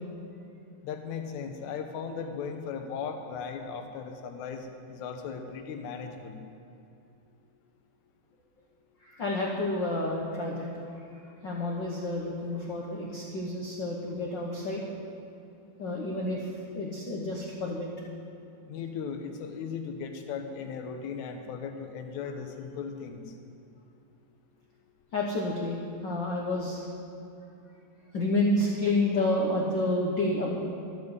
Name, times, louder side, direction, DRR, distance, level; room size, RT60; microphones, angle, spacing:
voice 1, 0.8-6.4 18.7-23.3, left 6 dB, 70° left, 5 dB, 2.1 m, -37 dB
voice 2, 9.0-10.7 11.0-11.1 11.4-14.8 15.8-17.9 25.1-26.8 28.1-30.5, left 2 dB, 85° left, -2 dB, 1.0 m, -29 dB
12.5 x 7.5 x 8.0 m, 2.7 s
omnidirectional pair, 4.1 m